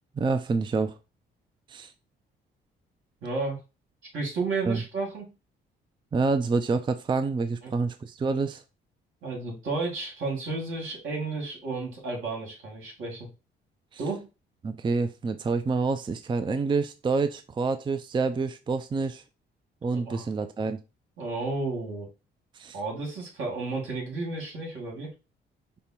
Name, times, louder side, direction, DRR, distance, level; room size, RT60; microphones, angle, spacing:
voice 1, 0.2-1.0 1.7-1.9 4.7-4.8 6.1-8.6 14.6-19.2 19.8-20.8 22.5-22.8, right 4 dB, 25° right, 10 dB, 0.4 m, -27 dB
voice 2, 3.2-3.6 4.1-5.3 7.6-7.7 9.2-13.3 14.0-14.3 19.9-20.3 21.2-22.1 22.7-25.1, right 3 dB, 80° right, 0 dB, 2.5 m, -32 dB
5.2 x 2.2 x 4.3 m, 0.28 s
cardioid pair, 90°, 20 cm